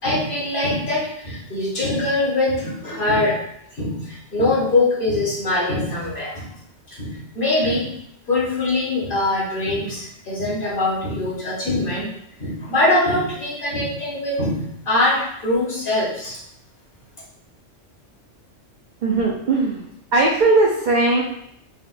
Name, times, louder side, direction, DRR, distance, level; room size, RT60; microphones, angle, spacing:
voice 1, 0.0-3.4 3.7-6.5 6.9-7.9 8.3-12.1 12.4-16.4, left 2 dB, 50° left, -6 dB, 1.1 m, -22 dB
voice 2, 19.0-19.8 20.1-21.2, right 3 dB, 65° right, -3 dB, 0.4 m, -18 dB
4.0 x 2.1 x 2.4 m, 0.74 s
omnidirectional pair, 1.3 m